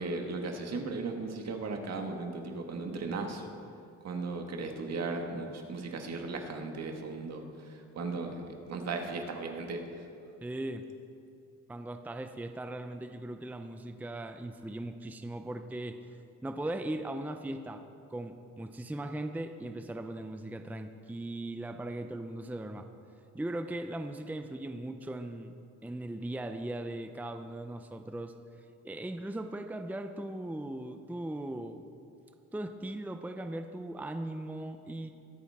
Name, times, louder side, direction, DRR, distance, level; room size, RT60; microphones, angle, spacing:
voice 1, 0.0-3.4 4.0-7.4 7.9-9.8, right 3 dB, 60° right, 3 dB, 1.8 m, -36 dB
voice 2, 10.4-10.8 11.7-16.0 16.4-17.8 18.1-22.9 23.3-25.5 25.8-28.3 28.8-31.9 32.5-35.1, right 1 dB, 5° right, 7 dB, 0.6 m, -38 dB
22.0 x 8.7 x 3.6 m, 2.6 s
cardioid pair, 90°, 30 cm